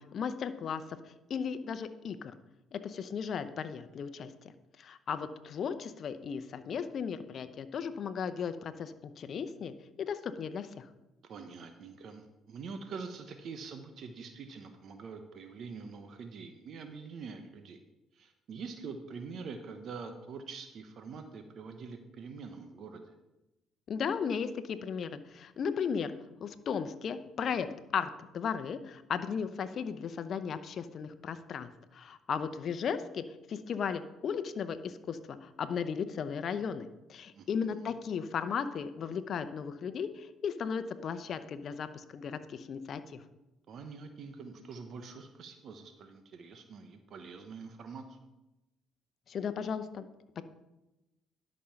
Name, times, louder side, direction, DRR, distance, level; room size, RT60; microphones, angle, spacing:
voice 1, 0.0-2.4 2.7-4.5 4.8-10.9 23.9-26.1 26.4-27.7 27.9-43.2 49.3-50.0 50.4-50.5, left 6 dB, 55° left, 11 dB, 0.7 m, -36 dB
voice 2, 11.2-17.8 18.1-23.1 37.3-37.9 43.7-48.2, right 5 dB, 60° right, 7 dB, 0.9 m, -45 dB
11.5 x 5.4 x 5.8 m, 0.98 s
supercardioid pair, 80°, 0 cm